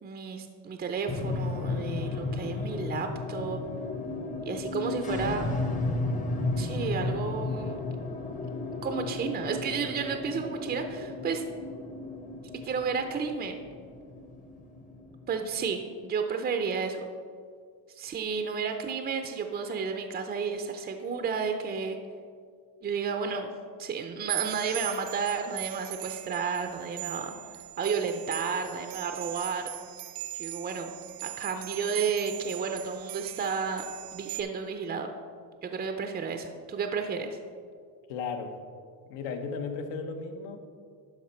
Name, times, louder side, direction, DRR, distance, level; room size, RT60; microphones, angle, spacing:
voice 1, 0.0-3.6 4.5-5.5 6.6-7.8 8.8-11.4 12.6-13.6 15.3-17.1 18.0-22.0 22.8-23.5 23.8-27.4 27.8-29.7 30.3-30.9 31.2-33.8 34.1-35.1 35.6-37.4, right 5 dB, 25° right, 6 dB, 0.4 m, -32 dB
sound 1, 1.1-15.7, left 3 dB, 20° left, 0.6 m, -34 dB
sound 2, 24.3-34.4, right 15 dB, 65° right, 0.6 m, -39 dB
voice 2, 38.1-38.5 39.1-40.6, left 5 dB, 85° left, 6 dB, 1.0 m, -35 dB
11.5 x 4.5 x 4.3 m, 2.1 s
cardioid pair, 125°, 43 cm